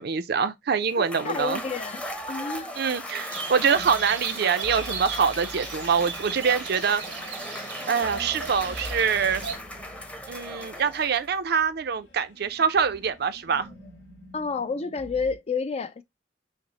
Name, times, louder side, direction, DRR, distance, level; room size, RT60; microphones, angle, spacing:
voice 1, 0.0-1.6 2.8-7.0 7.9-9.5 10.3-13.7, right 6 dB, 60° right, 0.5 m, -25 dB
Cheering / Applause / Crowd, 0.9-11.4, left 1 dB, 5° left, 0.7 m, -38 dB
voice 2, 1.2-2.7 14.3-16.0, left 4 dB, 35° left, 0.4 m, -30 dB
sound 1, 1.4-15.4, equal, 80° left, 2.3 m, -47 dB
sound 2, 3.3-9.6, right 6 dB, 90° right, 1.0 m, -37 dB
5.7 x 2.1 x 4.0 m
head